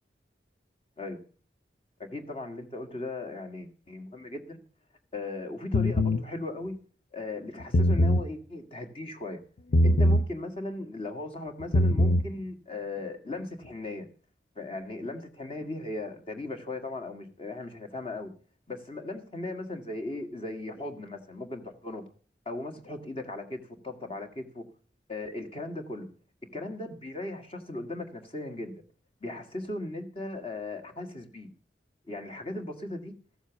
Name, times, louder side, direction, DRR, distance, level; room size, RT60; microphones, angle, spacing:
voice 1, 2.0-4.6 5.1-6.8 7.1-9.4 9.8-14.1 14.6-18.3 18.7-22.0 22.5-24.6 25.1-26.1 26.5-28.7 29.2-31.5 32.1-33.1, left 2 dB, 30° left, 5 dB, 1.9 m, -37 dB
sound 1, 5.7-6.2 7.6-8.3 9.7-10.3 11.6-12.3, left 1 dB, 65° left, 0.6 m, -22 dB
14.5 x 7.2 x 7.1 m, 0.41 s
head